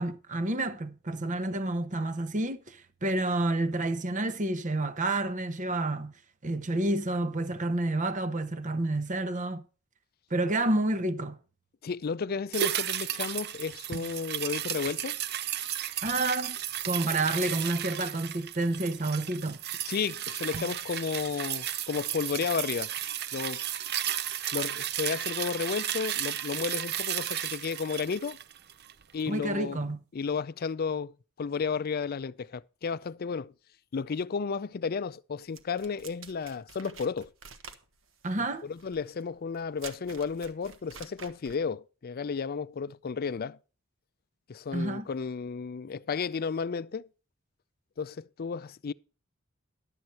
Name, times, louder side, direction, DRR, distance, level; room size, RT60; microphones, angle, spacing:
voice 1, 0.0-6.2 6.4-9.6 10.3-11.4 16.0-16.6 16.8-19.6 29.3-30.0 38.2-38.6 44.7-45.1, right 2 dB, 40° right, 0.9 m, -29 dB
voice 2, 11.8-15.2 19.9-22.9 23.3-23.6 24.5-28.4 29.1-29.8 30.1-33.5 33.9-37.3 38.4-43.6 44.5-47.1 48.0-48.9, left 5 dB, 50° left, 0.4 m, -33 dB
sound 1, 12.5-29.0 29.3-29.4, right 11 dB, 55° right, 0.6 m, -34 dB
sound 2, 35.5-41.7, right 6 dB, 70° right, 1.4 m, -48 dB
11.5 x 7.9 x 4.2 m
head